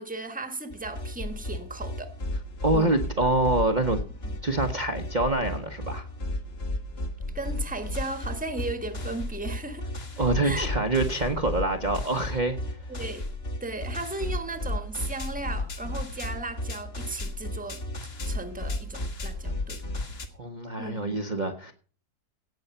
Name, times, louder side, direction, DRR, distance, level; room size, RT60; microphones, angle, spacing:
voice 1, 0.0-2.1 2.7-3.0 4.2-4.4 7.3-9.9 10.4-10.7 12.9-13.3 13.6-17.8 18.3-19.8 20.8-21.1, right 2 dB, 5° right, 1.3 m, -36 dB
sound 1, 0.7-20.3, left 1 dB, 40° left, 1.8 m, -34 dB
voice 2, 2.6-4.0 4.4-6.1 10.2-12.8 20.4-21.7, right 2 dB, 30° right, 1.1 m, -26 dB
17.5 x 6.4 x 5.5 m
omnidirectional pair, 1.7 m